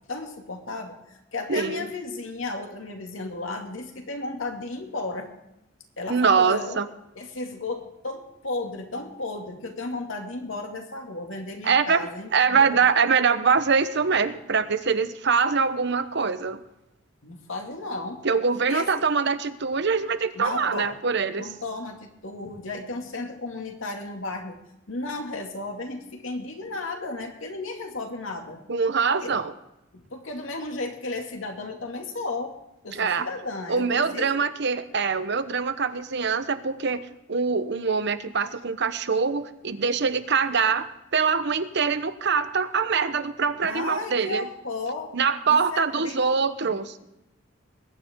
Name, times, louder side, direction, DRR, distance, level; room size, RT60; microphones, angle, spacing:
voice 1, 0.1-5.3 6.0-6.8 7.2-12.8 17.2-18.2 18.7-19.0 20.3-20.9 21.4-24.6 24.9-28.6 29.2-29.3 29.9-32.5 32.8-34.3 43.6-45.1 45.5-46.2 46.6-46.8, left 2 dB, 90° left, 3 dB, 2.4 m, -34 dB
voice 2, 1.5-1.9 6.1-6.9 11.6-16.6 18.2-21.5 28.7-29.5 32.9-33.3 33.7-37.0 37.3-44.5 45.1-47.0, right 5 dB, 60° right, 11 dB, 0.9 m, -24 dB
21.0 x 9.8 x 3.7 m, 0.88 s
head